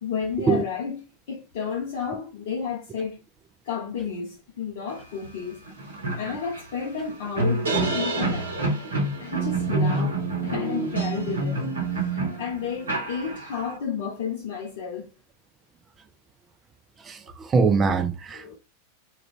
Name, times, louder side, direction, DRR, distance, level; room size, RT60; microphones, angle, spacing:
voice 1, 0.0-3.2 3.6-8.7 9.2-15.1 18.3-18.6, left 6 dB, 55° left, 0.5 m, -32 dB
sound 1, 5.2-5.3 5.7-13.7, right 2 dB, 70° right, 0.8 m, -27 dB
voice 2, 17.0-18.6, right 5 dB, 20° right, 0.4 m, -23 dB
2.3 x 2.3 x 3.5 m
figure-of-eight pair, 90°, 0 cm